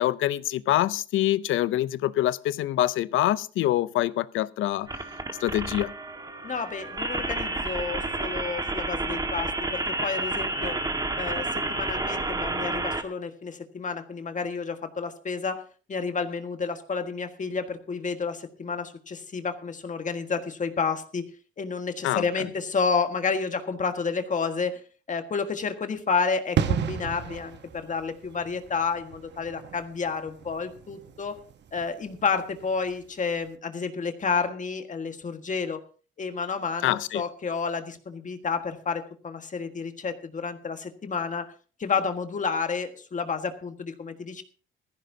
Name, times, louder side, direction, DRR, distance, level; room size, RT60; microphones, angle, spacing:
voice 1, 0.0-4.9 5.4-5.9 22.0-22.2 36.8-37.2, left 13 dB, 80° left, 0.6 m, -25 dB
sound 1, 4.9-13.0, right 2 dB, 20° right, 1.6 m, -30 dB
voice 2, 6.4-10.8 11.2-15.6 15.9-21.3 21.6-24.8 25.1-31.4 31.7-35.8 36.2-41.5 41.8-44.4, left 5 dB, 40° left, 1.6 m, -30 dB
sound 2, 26.6-33.1 33.3-33.5, right 8 dB, 60° right, 1.1 m, -33 dB
16.5 x 14.5 x 2.8 m
cardioid pair, 90°, 20 cm